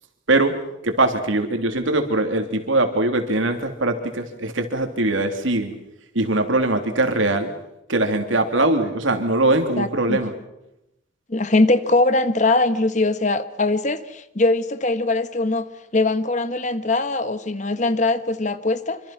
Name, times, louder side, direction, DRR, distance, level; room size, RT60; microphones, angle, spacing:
voice 1, 0.8-5.8 6.1-7.5 7.9-10.3, right 2 dB, 75° right, 3.1 m, -21 dB
voice 2, 9.8-10.2 11.3-19.0, left 2 dB, 35° left, 1.2 m, -21 dB
26.5 x 25.5 x 5.9 m
head